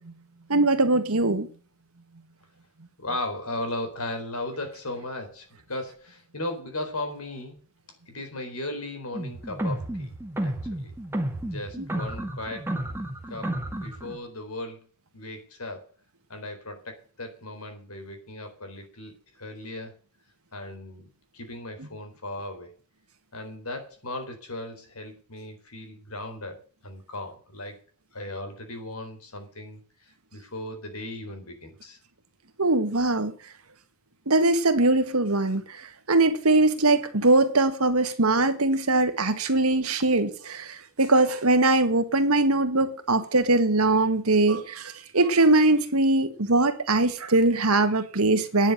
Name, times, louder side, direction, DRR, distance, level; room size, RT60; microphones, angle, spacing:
voice 1, 0.5-1.5 32.6-33.3 34.3-35.8 36.1-48.7, right 2 dB, 80° right, 1.8 m, -21 dB
voice 2, 3.0-7.6 8.1-10.1 10.4-10.9 11.4-12.7 13.3-14.9 15.1-15.9 16.3-19.9 20.5-21.1 21.3-22.7 23.3-27.8 28.1-32.0, left 2 dB, 85° left, 4.3 m, -37 dB
sound 1, 9.1-14.2, right 1 dB, 10° right, 1.9 m, -32 dB
10.5 x 7.2 x 8.9 m
head